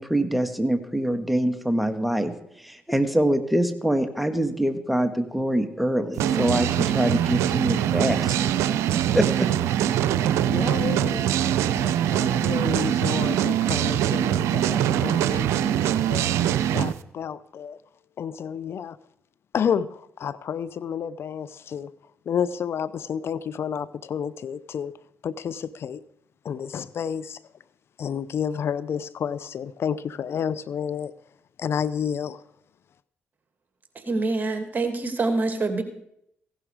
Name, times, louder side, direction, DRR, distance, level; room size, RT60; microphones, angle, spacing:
voice 1, 0.0-2.3 2.6-8.7 9.1-9.5, right 1 dB, ahead, 8 dB, 1.7 m, -24 dB
sound 1, 6.2-16.9, right 10 dB, 85° right, 0.6 m, -23 dB
voice 2, 10.4-11.3 11.8-16.3 16.7-17.8 18.2-19.0 19.5-21.9 22.3-24.9 25.2-26.0 26.4-27.4 28.0-31.1 31.6-32.4, left 7 dB, 65° left, 17 dB, 0.5 m, -30 dB
voice 3, 34.1-35.8, right 3 dB, 40° right, 6 dB, 2.5 m, -25 dB
16.0 x 11.5 x 4.9 m, 0.75 s
supercardioid pair, 55°, 5 cm